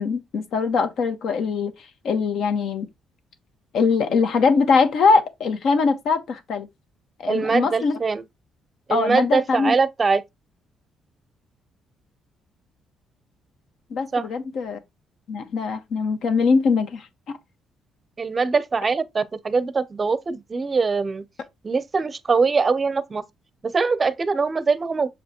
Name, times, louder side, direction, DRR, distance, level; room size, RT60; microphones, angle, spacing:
voice 1, 0.0-1.7 2.0-2.9 3.7-6.7 7.2-8.0 8.9-9.7 13.9-14.8 15.3-17.1, left 4 dB, 60° left, 1.3 m, -22 dB
voice 2, 7.3-8.2 8.9-10.2 14.1-14.3 18.2-21.2 21.6-23.2 23.6-25.1, right 4 dB, 25° right, 0.6 m, -22 dB
6.9 x 4.8 x 2.9 m
cardioid pair, 135°, 0 cm